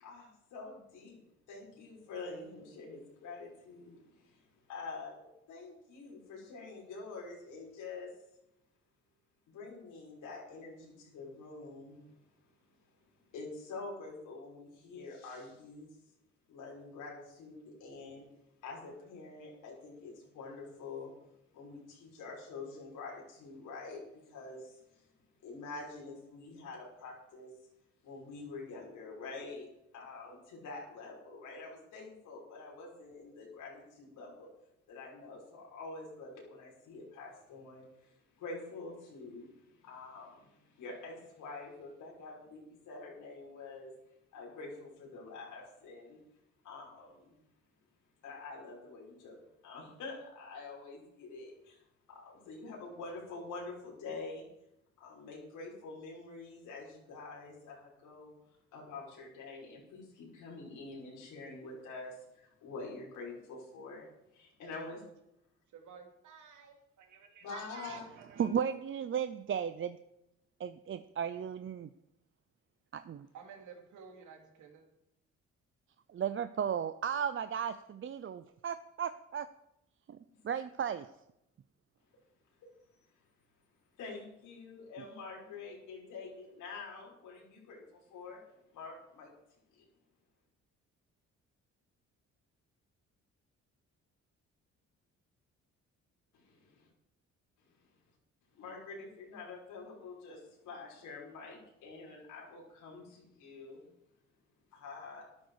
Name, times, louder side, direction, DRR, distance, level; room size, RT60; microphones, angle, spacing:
voice 1, 0.0-1.2 1.5-4.0 4.7-8.1 9.5-12.0 13.3-15.9 16.5-18.2 18.6-21.1 21.5-24.0 24.3-24.6 25.4-27.5 28.0-29.6 29.9-34.5 34.9-37.9 38.4-39.5 39.8-40.3 40.8-43.9 44.3-46.2 46.6-47.3 48.2-49.4 49.6-51.7 52.1-54.5 55.0-58.3 58.7-62.1 62.6-64.1 64.4-65.0 67.4-68.0 68.4-68.6 84.0-87.8 88.1-88.4 88.7-89.3 98.6-100.4 100.6-103.8 104.7-105.2, left 3 dB, 85° left, -3 dB, 5.8 m, -46 dB
voice 2, 65.7-68.5 73.3-74.8, right 6 dB, 80° right, 4 dB, 2.8 m, -52 dB
voice 3, 68.4-70.0 70.6-71.9 72.9-73.3 76.1-79.5 80.1-80.2 80.4-81.1, right 8 dB, 40° right, 12 dB, 0.6 m, -35 dB
13.0 x 11.5 x 4.9 m, 0.84 s
cardioid pair, 90°, 30 cm